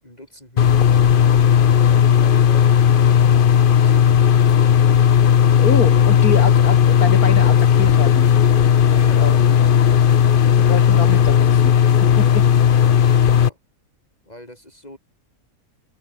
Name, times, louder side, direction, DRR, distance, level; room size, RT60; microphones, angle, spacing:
voice 1, 0.0-0.9 8.9-10.3 13.2-13.6 14.2-15.0, left 1 dB, 25° left, 5.1 m, -43 dB
sound 1, 0.6-13.5, left 8 dB, 50° left, 0.7 m, -14 dB
voice 2, 5.6-8.3 8.9-9.3 10.6-11.7 12.0-12.5, left 5 dB, 80° left, 2.9 m, -26 dB
omnidirectional pair, 1.6 m